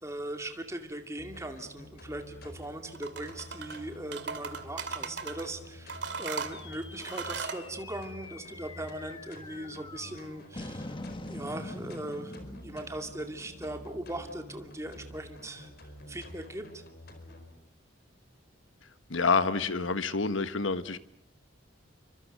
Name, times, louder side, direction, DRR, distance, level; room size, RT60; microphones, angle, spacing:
voice 1, 0.0-10.9 11.3-16.8, right 1 dB, 15° right, 5 dB, 2.4 m, -39 dB
sound 1, 1.2-17.5, equal, 50° left, 4.6 m, -49 dB
sound 2, 2.9-3.8 4.1-5.5 5.9-7.6, right 5 dB, 60° right, 2.5 m, -37 dB
sound 3, 6.5-15.1, left 2 dB, 25° left, 1.2 m, -45 dB
voice 2, 19.1-21.0, left 4 dB, 70° left, 13 dB, 1.3 m, -27 dB
28.5 x 24.5 x 6.7 m, 0.69 s
head